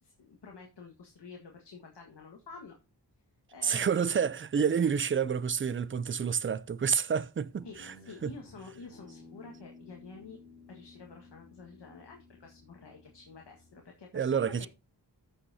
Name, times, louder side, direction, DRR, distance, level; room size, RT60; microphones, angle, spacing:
voice 1, 0.0-2.8 3.5-4.0 7.6-10.4 10.7-14.7, left 4 dB, 70° left, 1.6 m, -49 dB
voice 2, 3.6-7.9 8.2-8.3 14.1-14.7, right 7 dB, 30° right, 0.4 m, -29 dB
Guitar, 7.6-14.1, left 3 dB, 45° left, 3.5 m, -55 dB
14.0 x 5.7 x 2.7 m
wide cardioid pair, 65°, 43 cm